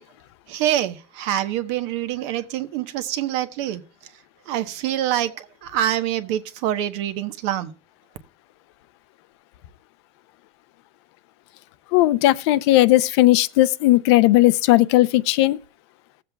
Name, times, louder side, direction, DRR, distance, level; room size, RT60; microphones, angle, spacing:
voice 1, 0.5-7.7, right 12 dB, 80° right, 1.0 m, -26 dB
voice 2, 11.9-15.6, left 16 dB, 85° left, 0.5 m, -17 dB
20.0 x 7.5 x 2.3 m
cardioid pair, 130°, 14 cm